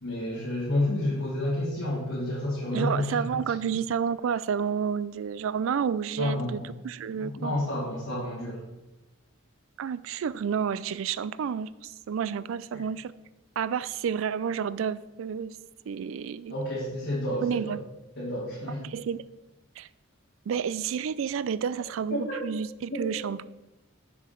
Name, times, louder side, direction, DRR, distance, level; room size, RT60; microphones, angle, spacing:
voice 1, 0.0-3.2 6.2-6.7 7.2-8.6 16.5-17.8 18.2-18.8 22.1-22.4, left 1 dB, 55° left, -9 dB, 2.2 m, -30 dB
voice 2, 2.7-7.6 9.8-13.1 13.6-15.6 15.9-16.5 17.4-17.8 18.8-19.2 19.8-19.9 20.5-23.4, right 7 dB, 75° right, 17 dB, 0.3 m, -30 dB
6.8 x 5.1 x 5.8 m, 1.0 s
head